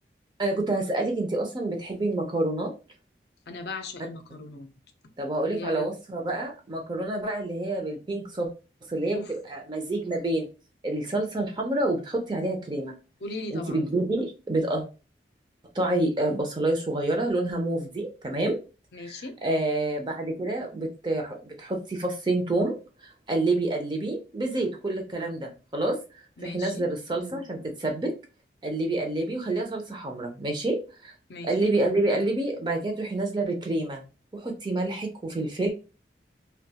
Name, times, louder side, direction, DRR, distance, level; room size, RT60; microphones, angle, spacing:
voice 1, 0.4-2.7 5.2-8.5 8.9-9.2 9.5-10.5 10.8-12.9 13.5-14.8 15.7-18.6 19.0-22.7 23.0-26.0 26.4-28.1 28.6-31.1 31.4-34.0 34.3-35.7, right 2 dB, 25° right, 3 dB, 0.4 m, -28 dB
voice 2, 3.5-4.7 5.5-5.9 9.1-9.3 13.2-13.8 18.9-19.3 26.4-26.8 31.3-31.5, left 2 dB, 70° left, 6 dB, 0.5 m, -37 dB
2.3 x 2.2 x 2.7 m, 0.32 s
head